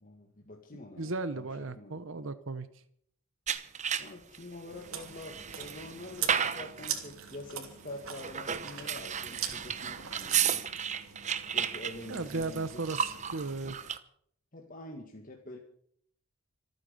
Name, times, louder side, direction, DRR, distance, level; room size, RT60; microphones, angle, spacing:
voice 1, 0.0-2.0 4.0-10.7 11.5-12.8 14.5-15.6, left 1 dB, 40° left, 1 dB, 2.0 m, -46 dB
voice 2, 1.0-2.7 12.1-13.8, right 3 dB, 65° right, 12 dB, 1.0 m, -35 dB
sound 1, 3.5-4.4 4.9-6.9 8.0-14.0, right 8 dB, 35° right, 1.0 m, -34 dB
Chewing mastication, 4.7-13.5, right 9 dB, 85° right, 3.1 m, -42 dB
26.0 x 9.6 x 5.3 m, 0.64 s
head